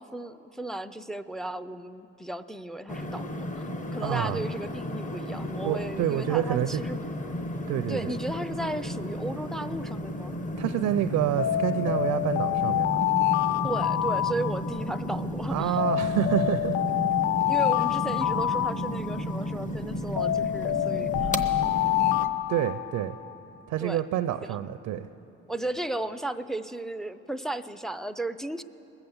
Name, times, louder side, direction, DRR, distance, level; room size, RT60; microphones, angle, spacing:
voice 1, 0.0-3.6 3.9-7.0 7.9-10.3 13.6-15.8 17.5-21.3 23.8-24.0 24.5-24.6 25.5-28.6, right 1 dB, ahead, 11 dB, 0.3 m, -35 dB
sound 1, 2.9-22.3, equal, 25° left, 0.7 m, -33 dB
voice 2, 4.0-4.4 5.6-6.8 7.7-8.2 10.6-13.0 15.5-16.8 22.5-23.2 23.7-25.1, right 12 dB, 75° right, 10 dB, 0.5 m, -28 dB
Alarm, 11.4-15.1 15.8-19.5 20.2-23.4, left 13 dB, 75° left, 0.5 m, -27 dB
20.5 x 8.0 x 7.1 m, 3.0 s
cardioid pair, 90°, 30 cm